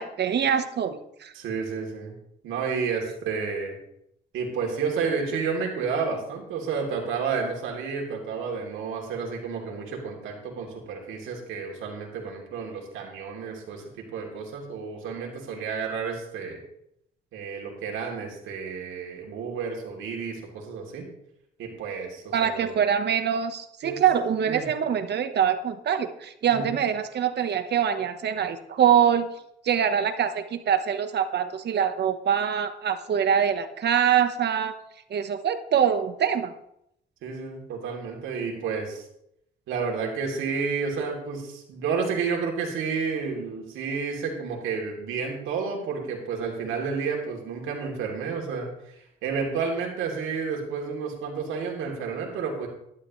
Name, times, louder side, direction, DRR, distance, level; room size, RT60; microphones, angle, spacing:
voice 1, 0.0-1.3 22.3-29.3 29.6-34.7 35.1-36.5, right 8 dB, 60° right, 9 dB, 1.2 m, -24 dB
voice 2, 1.3-2.2 2.4-3.8 4.3-16.6 17.3-21.1 21.6-22.8 23.8-24.0 24.5-24.7 26.5-26.8 37.2-39.1 39.7-52.7, right 5 dB, 85° right, 0 dB, 3.2 m, -31 dB
12.0 x 12.0 x 3.2 m, 0.77 s
cardioid pair, 90°, 20 cm